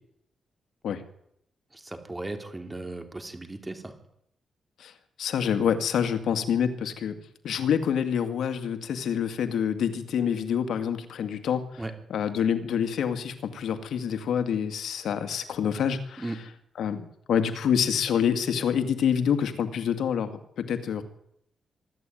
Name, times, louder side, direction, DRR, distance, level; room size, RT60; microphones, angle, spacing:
voice 1, 1.7-3.9 11.8-11.9 16.2-16.4, right 2 dB, 15° right, 6 dB, 3.8 m, -36 dB
voice 2, 5.2-7.2 7.4-11.8 12.1-16.3 16.8-21.0, left 8 dB, 80° left, 8 dB, 2.3 m, -27 dB
24.5 x 13.5 x 9.3 m, 0.73 s
cardioid pair, 95°, 0 cm